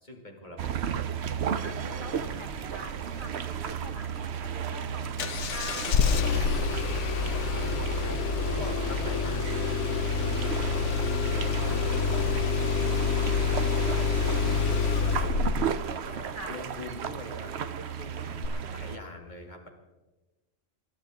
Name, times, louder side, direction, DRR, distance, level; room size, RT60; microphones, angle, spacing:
voice 1, 0.0-0.8 8.0-9.8 10.1-19.7, left 1 dB, 35° left, 0 dB, 2.4 m, -44 dB
sound 1, 0.6-19.0, right 8 dB, 65° right, 0.9 m, -34 dB
voice 2, 1.6-7.1 16.3-16.6, right 2 dB, 45° right, 4 dB, 1.4 m, -45 dB
Engine starting, 5.2-15.8 18.4-18.5, left 6 dB, 75° left, 1.1 m, -27 dB
27.0 x 11.5 x 3.7 m, 1.1 s
omnidirectional pair, 1.3 m